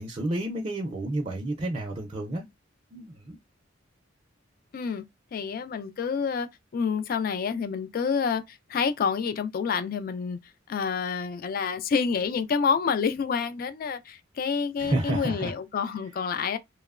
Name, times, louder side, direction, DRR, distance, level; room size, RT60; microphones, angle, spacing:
voice 1, 0.0-2.4 2.9-3.4 14.8-15.5, right 1 dB, 30° right, 0.4 m, -30 dB
voice 2, 4.7-5.0 5.3-6.5 6.7-10.4 10.7-16.6, left 6 dB, 45° left, 0.3 m, -28 dB
2.9 x 2.0 x 2.3 m
head